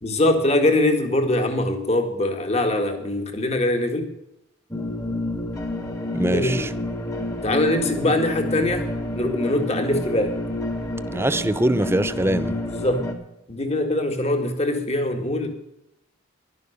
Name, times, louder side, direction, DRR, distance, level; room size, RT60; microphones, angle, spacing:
voice 1, 0.0-4.1 6.3-6.7 7.4-8.9 9.1-10.4 12.7-13.1 13.5-15.5, left 1 dB, 30° left, 2.0 m, -22 dB
sound 1, 4.7-13.1, left 1 dB, 15° left, 1.7 m, -29 dB
voice 2, 6.1-6.7 11.1-12.6, right 1 dB, 10° right, 0.5 m, -22 dB
11.5 x 11.0 x 6.7 m
head